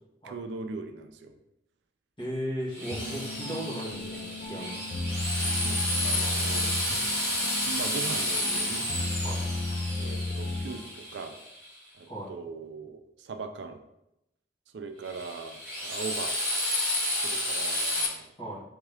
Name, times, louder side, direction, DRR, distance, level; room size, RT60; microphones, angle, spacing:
voice 1, 0.2-1.3 5.6-6.7 7.7-8.9 10.0-11.4 11.9-13.8 14.7-15.6 15.8-16.3 17.2-18.3, right 4 dB, 80° right, 7 dB, 0.4 m, -39 dB
voice 2, 2.2-4.9 9.2-9.4 12.1-12.3 18.4-18.6, equal, 25° left, -7 dB, 1.6 m, -36 dB
Drill, 2.7-11.7 15.1-18.0, left 1 dB, 5° left, 1.3 m, -31 dB
sound 1, 2.9-11.0, left 2 dB, 50° left, 0.5 m, -34 dB
3.6 x 3.5 x 3.4 m, 0.86 s
head